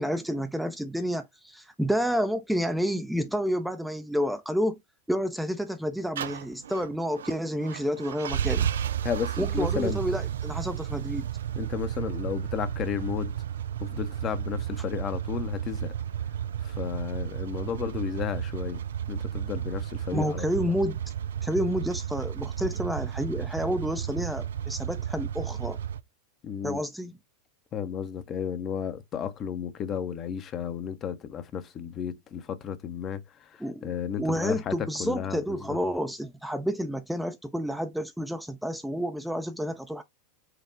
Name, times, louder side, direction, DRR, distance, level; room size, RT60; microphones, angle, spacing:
voice 1, 0.0-4.8 5.1-8.7 9.4-11.3 20.1-21.0 21.4-25.8 26.6-27.1 33.6-33.9 34.2-40.0, equal, 5° right, 0.5 m, -29 dB
sound 1, 6.2-26.0, right 10 dB, 70° right, 0.3 m, -33 dB
voice 2, 9.0-10.0 11.6-13.3 13.8-15.9 16.6-20.8 26.4-26.8 27.7-35.8, left 8 dB, 35° left, 0.8 m, -33 dB
4.8 x 2.3 x 3.6 m
figure-of-eight pair, 85°, 0 cm